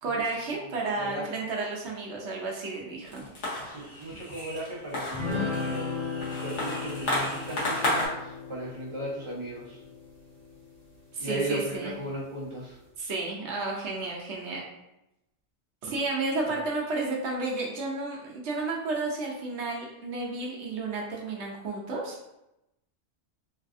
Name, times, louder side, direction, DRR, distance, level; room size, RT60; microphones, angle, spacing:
voice 1, 0.0-3.2 11.1-11.9 13.0-14.7 15.8-22.2, right 3 dB, 75° right, -2 dB, 1.0 m, -32 dB
voice 2, 1.0-1.3 3.2-3.3 3.6-5.9 6.4-9.8 11.2-12.7, right 1 dB, 30° right, -5 dB, 0.7 m, -36 dB
sound 1, 3.1-8.1, left 1 dB, 80° left, 1.3 m, -32 dB
sound 2, 5.1-10.8, left 4 dB, 65° left, 1.7 m, -36 dB
3.3 x 2.3 x 2.5 m, 0.90 s
omnidirectional pair, 1.2 m